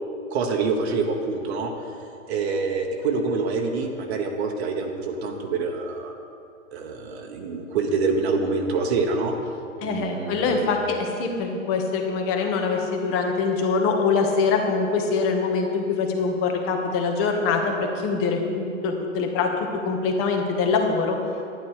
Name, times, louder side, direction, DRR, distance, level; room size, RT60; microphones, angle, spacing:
voice 1, 0.3-1.9 2.3-6.1 6.7-9.3 9.8-10.7, right 4 dB, 55° right, 2 dB, 1.3 m, -26 dB
voice 2, 9.8-21.2, left 4 dB, 35° left, 3 dB, 1.8 m, -24 dB
11.5 x 10.0 x 4.9 m, 2.5 s
hypercardioid pair, 115°, 39 cm